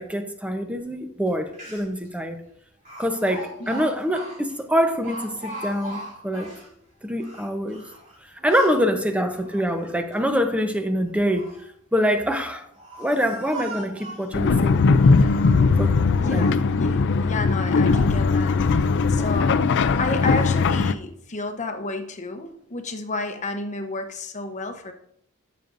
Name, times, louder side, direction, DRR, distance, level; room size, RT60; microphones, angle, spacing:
voice 1, 0.0-2.4 3.0-6.5 7.0-7.8 8.4-11.5 11.9-12.6 13.0-15.1 15.8-16.0 16.3-16.4, equal, 5° right, 6 dB, 0.8 m, -25 dB
Speech, 1.3-1.4 1.5-2.1 2.9-6.7 7.2-8.8 9.4-10.2 11.1-11.7 12.4-14.4 14.9-15.7 16.1-16.6 17.2-17.3 17.8-18.2 18.6-18.9, right 1 dB, 40° right, 3.7 m, -40 dB
sound 1, 14.3-20.9, left 4 dB, 55° left, 0.4 m, -19 dB
voice 2, 16.2-24.9, left 2 dB, 35° left, 6 dB, 0.9 m, -31 dB
14.0 x 6.9 x 2.6 m, 0.71 s
head